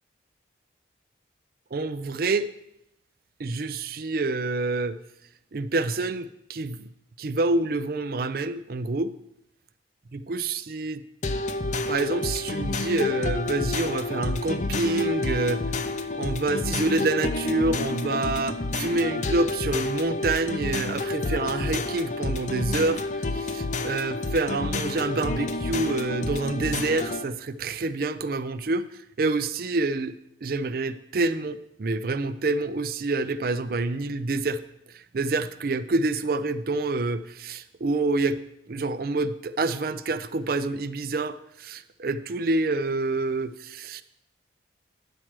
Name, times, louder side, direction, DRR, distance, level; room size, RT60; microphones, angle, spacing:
voice 1, 1.7-2.5 3.4-5.0 5.5-6.9 7.2-9.1 10.1-11.0 11.9-15.6 16.1-28.9 29.2-30.1 30.4-34.6 34.9-38.4 38.7-44.0, right 3 dB, 50° right, 13 dB, 0.4 m, -27 dB
sound 1, 11.2-27.2, left 2 dB, 40° left, 0.5 m, -29 dB
10.0 x 7.4 x 4.6 m, 0.80 s
head